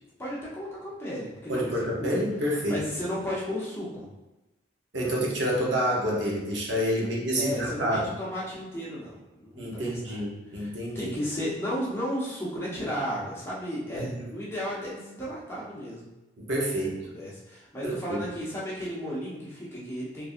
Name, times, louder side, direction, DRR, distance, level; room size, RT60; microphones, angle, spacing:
voice 1, 0.2-1.6 2.0-2.2 2.7-4.1 7.4-10.2 10.5-16.1 16.5-16.6 17.0-20.3, equal, 15° left, -7 dB, 0.8 m, -34 dB
voice 2, 1.5-2.8 4.9-8.1 9.6-11.1 13.9-14.3 16.4-17.0 17.8-18.2, equal, 70° right, -3 dB, 0.8 m, -28 dB
3.8 x 2.6 x 2.5 m, 1.0 s
head